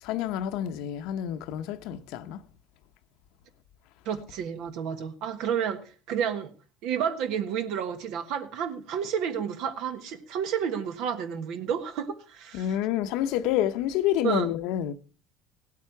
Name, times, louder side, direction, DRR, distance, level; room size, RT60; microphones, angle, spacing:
voice 1, 0.0-2.4 12.5-14.9, left 11 dB, 75° left, 0.8 m, -28 dB
voice 2, 4.0-6.5 6.8-12.7 14.2-14.5, right 8 dB, 70° right, 1.4 m, -30 dB
16.5 x 8.5 x 4.6 m
supercardioid pair, 115°, 0 cm